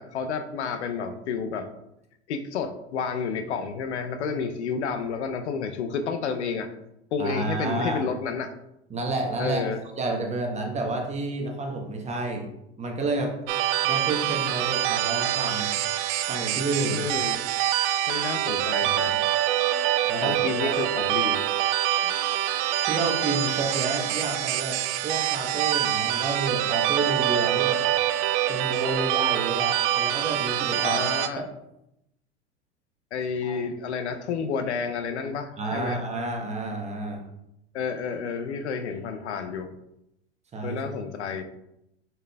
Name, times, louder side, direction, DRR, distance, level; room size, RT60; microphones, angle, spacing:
voice 1, 0.0-1.7 2.3-6.7 7.1-8.5 9.4-9.8 16.9-17.4 18.1-19.2 20.2-21.4 30.8-31.4 33.1-36.0 37.7-39.7 40.6-41.4, left 5 dB, 80° left, 8 dB, 0.6 m, -30 dB
voice 2, 7.2-8.0 8.9-9.6 10.0-12.5 12.8-13.4 13.8-15.7 16.3-17.0 19.0-19.2 20.1-20.8 22.8-27.8 28.5-31.0 31.4-31.5 33.4-33.6 35.6-37.2 40.5-40.8, right 2 dB, 20° right, 1 dB, 1.0 m, -30 dB
sound 1, 13.5-31.3, right 12 dB, 55° right, 0.4 m, -25 dB
5.0 x 4.4 x 2.2 m, 0.84 s
hypercardioid pair, 95°, 34 cm